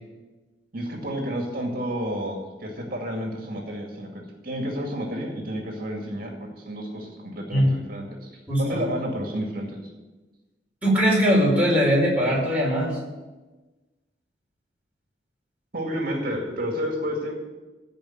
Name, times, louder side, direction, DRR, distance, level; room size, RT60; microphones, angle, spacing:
voice 1, 0.7-8.3 8.6-9.8 15.7-17.3, equal, 50° right, 1 dB, 2.3 m, -30 dB
voice 2, 8.5-8.8 10.8-13.0, equal, 10° right, -5 dB, 4.8 m, -20 dB
15.5 x 5.4 x 9.3 m, 1.2 s
head